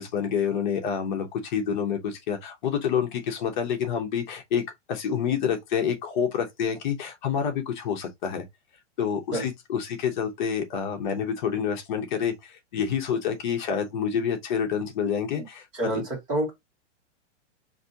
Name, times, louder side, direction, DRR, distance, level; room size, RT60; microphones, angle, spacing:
voice 1, 0.0-4.6 4.9-8.4 9.0-15.6 15.9-16.0, left 7 dB, 40° left, 0.9 m, -28 dB
voice 2, 15.8-16.5, right 1 dB, 20° right, 1.8 m, -27 dB
4.9 x 2.7 x 2.7 m
supercardioid pair, 175°, 37 cm